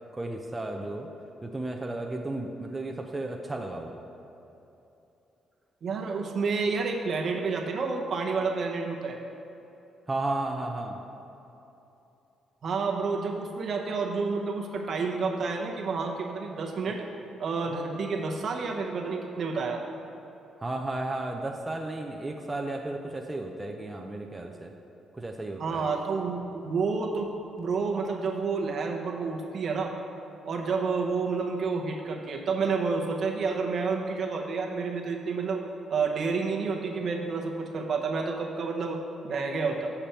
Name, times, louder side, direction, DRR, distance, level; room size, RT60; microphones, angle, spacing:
voice 1, 0.1-1.1 1.4-3.9 10.1-11.0 20.6-24.7 25.1-25.9, right 2 dB, 15° right, 2 dB, 0.5 m, -33 dB
voice 2, 5.8-9.2 12.6-17.1 17.4-19.8 25.6-27.3 27.6-30.0 30.5-39.9, right 4 dB, 55° right, 2 dB, 0.9 m, -29 dB
7.1 x 6.8 x 4.4 m, 3.0 s
cardioid pair, 90°, 0 cm